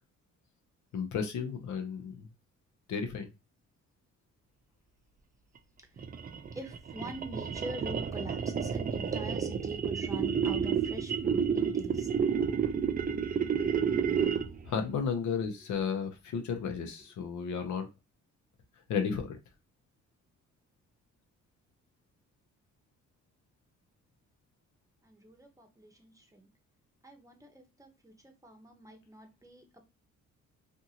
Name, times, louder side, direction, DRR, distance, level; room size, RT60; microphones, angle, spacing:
voice 1, 0.9-2.3 2.9-3.3 14.6-17.9 18.9-19.4, left 6 dB, 75° left, 6 dB, 0.7 m, -33 dB
sound 1, 6.0-14.7, right 7 dB, 30° right, 0.4 m, -30 dB
voice 2, 6.5-12.1 13.8-14.3 25.0-26.5 27.0-29.6, right 1 dB, 10° right, 2 dB, 0.8 m, -44 dB
2.6 x 2.5 x 2.8 m, 0.25 s
cardioid pair, 90°, 30 cm